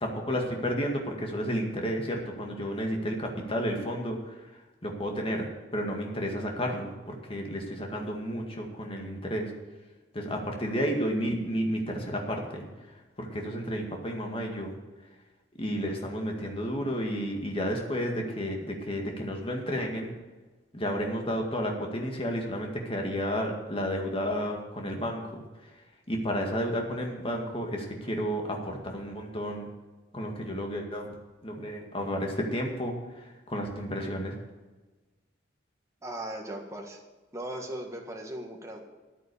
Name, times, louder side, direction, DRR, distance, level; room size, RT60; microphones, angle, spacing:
voice 1, 0.0-4.5 4.8-5.5 5.7-9.5 10.1-12.7 13.2-14.7 15.6-20.1 20.7-25.7 26.1-29.7 30.1-31.1 31.4-34.4, equal, 30° left, 1 dB, 2.0 m, -32 dB
voice 2, 36.0-37.0 37.3-38.8, right 1 dB, 15° right, 2 dB, 1.6 m, -38 dB
10.0 x 9.3 x 6.9 m, 1.2 s
head